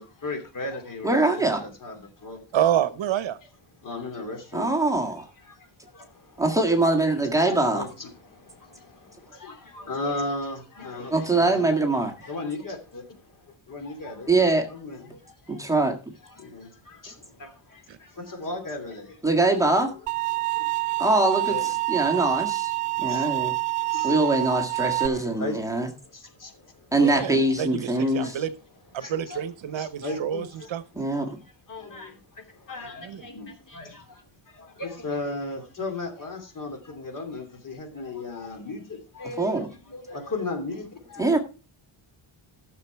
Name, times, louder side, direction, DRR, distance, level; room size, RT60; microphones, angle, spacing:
voice 1, 0.0-2.6 3.7-4.7 5.4-6.4 7.3-11.7 12.2-15.7 16.3-19.2 19.9-20.0 20.4-20.8 21.4-21.7 22.2-22.5 23.0-23.4 23.8-24.5 25.0-26.9 27.4-27.5 27.9-28.3 28.9-31.3 31.7-41.4, left 2 dB, 40° left, 2.9 m, -37 dB
voice 2, 1.0-1.6 4.5-5.3 6.4-7.8 11.1-12.1 14.3-14.7 15.5-16.0 19.2-19.9 21.0-22.7 23.0-23.5 24.0-25.9 26.9-28.4 31.0-31.4 39.4-39.7 41.2-41.4, right 2 dB, 5° right, 1.7 m, -23 dB
voice 3, 2.5-3.4 27.0-28.5 28.9-30.4 30.7-30.8 33.0-33.2, right 10 dB, 65° right, 1.0 m, -27 dB
sound 1, 20.1-25.1, right 22 dB, 85° right, 0.6 m, -27 dB
14.0 x 6.9 x 4.6 m
wide cardioid pair, 160°, 50 cm